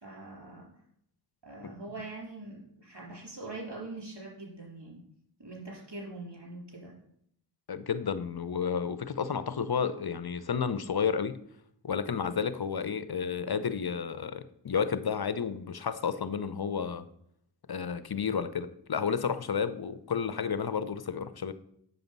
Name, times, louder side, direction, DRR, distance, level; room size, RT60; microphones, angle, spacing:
voice 1, 0.0-0.7 1.4-5.0 5.4-6.9, right 2 dB, 65° right, 4.1 m, -43 dB
voice 2, 7.7-11.4 11.8-17.0 17.7-21.5, left 6 dB, 60° left, 0.7 m, -31 dB
7.9 x 7.0 x 5.3 m
wide cardioid pair, 45°, 43 cm